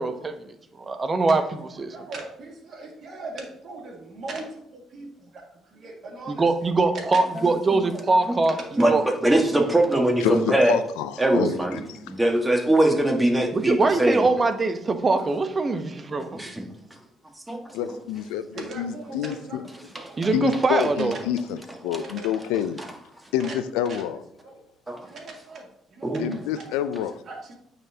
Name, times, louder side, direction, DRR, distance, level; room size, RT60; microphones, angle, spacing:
voice 1, 0.0-1.4 1.8-1.9 6.3-8.6 8.9-9.0 13.5-16.4 20.2-21.2, right 3 dB, 35° right, 8 dB, 0.9 m, -23 dB
voice 2, 1.3-1.6 1.9-7.3 7.7-8.1 8.5-9.7 18.5-20.2 20.8-21.3 21.6-22.8 23.4-24.1 24.4-24.6 25.0-26.7 27.2-27.5, right 2 dB, 55° right, 0 dB, 2.0 m, -40 dB
voice 3, 9.2-10.8 11.2-14.3 16.3-16.7 17.5-18.0 19.9-20.1 24.9-25.1 26.0-26.3, right 1 dB, 15° right, 2 dB, 1.5 m, -22 dB
voice 4, 10.2-12.0 17.7-19.6 20.3-22.8 23.3-24.2 26.2-27.1, left 10 dB, 80° left, 13 dB, 0.4 m, -28 dB
9.0 x 4.1 x 2.8 m, 0.77 s
hypercardioid pair, 55°, 0 cm